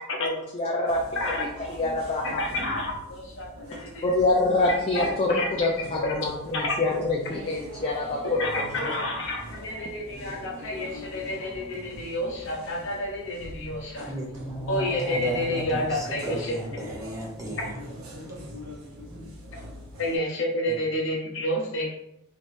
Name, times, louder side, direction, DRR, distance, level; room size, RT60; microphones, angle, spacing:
voice 1, 0.2-1.0 1.4-2.5 3.8-8.9, left 2 dB, 25° left, -2 dB, 0.4 m, -26 dB
sound 1, 0.9-20.2, equal, 80° right, 0.8 m, -42 dB
voice 2, 1.2-1.5 2.2-4.0 4.9-5.7 6.0-6.1 6.5-6.7 8.3-14.1 14.7-16.5 20.0-21.9, left 1 dB, 60° left, -1 dB, 0.7 m, -30 dB
voice 3, 14.1-17.7 19.2-19.3 20.7-20.8, equal, 15° right, -3 dB, 0.7 m, -35 dB
3.1 x 3.0 x 2.6 m, 0.80 s
head